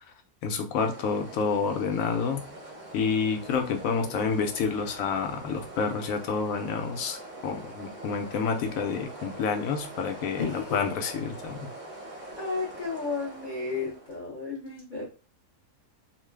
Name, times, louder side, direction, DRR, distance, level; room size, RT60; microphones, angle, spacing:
voice 1, 0.4-2.4 2.9-11.7, left 5 dB, 70° left, 4 dB, 1.0 m, -29 dB
sound 1, 0.7-14.2, right 1 dB, 45° right, 0.6 m, -44 dB
voice 2, 10.3-10.9 12.4-15.0, left 4 dB, 50° left, -3 dB, 0.6 m, -33 dB
3.1 x 2.1 x 3.2 m, 0.34 s
omnidirectional pair, 1.7 m